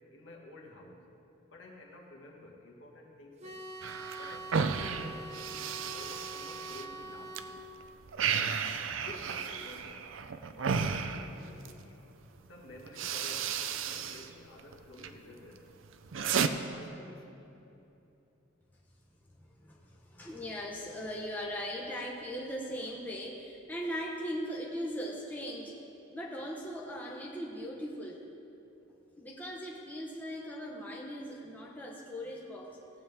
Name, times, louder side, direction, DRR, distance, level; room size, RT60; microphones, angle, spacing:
voice 1, 0.1-1.0 1.5-3.6 4.2-5.3 5.9-7.6 8.3-8.6 8.9-10.0 10.5-12.0 12.5-15.6 16.1-17.2, left 2 dB, 70° left, -1 dB, 1.7 m, -51 dB
sound 1, 3.4-7.6, right 2 dB, 35° right, 1.0 m, -44 dB
sound 2, 3.8-7.4 7.8-11.8 12.5-12.6 12.9-14.3 14.6-15.1 15.6-16.5, right 6 dB, 75° right, 0.5 m, -33 dB
voice 2, 19.6-25.7 26.1-28.2 29.2-32.8, equal, 10° left, -3 dB, 0.9 m, -39 dB
17.5 x 8.6 x 3.5 m, 2.9 s
head